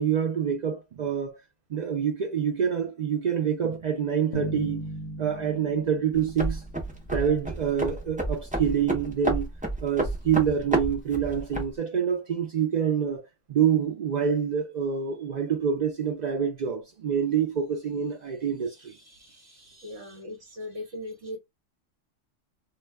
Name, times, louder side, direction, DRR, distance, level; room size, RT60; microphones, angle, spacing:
voice 1, 0.0-1.4 1.7-4.8 5.2-6.6 7.1-9.5 9.8-19.9, right 7 dB, 85° right, 0.3 m, -27 dB
Bass guitar, 4.3-7.4, equal, 65° left, 0.8 m, -37 dB
footsteps jog flat sneakers, 6.1-11.7, right 1 dB, 10° right, 0.5 m, -30 dB
voice 2, 19.8-21.4, left 1 dB, 60° right, 1.1 m, -38 dB
2.3 x 2.2 x 3.3 m
omnidirectional pair, 1.3 m